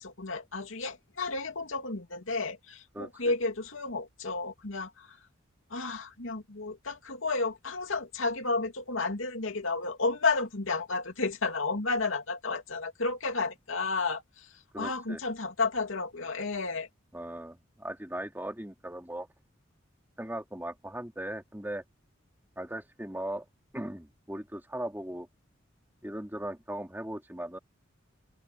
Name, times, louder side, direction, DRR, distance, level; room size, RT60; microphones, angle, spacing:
voice 1, 0.0-5.2 5.7-14.5 14.8-16.9, left 3 dB, 90° left, 2.7 m, -32 dB
voice 2, 2.9-3.3 14.7-15.2 17.1-19.3 20.2-21.8 22.6-23.4 23.7-25.3 26.0-27.6, right 1 dB, 10° right, 2.7 m, -38 dB
open air
head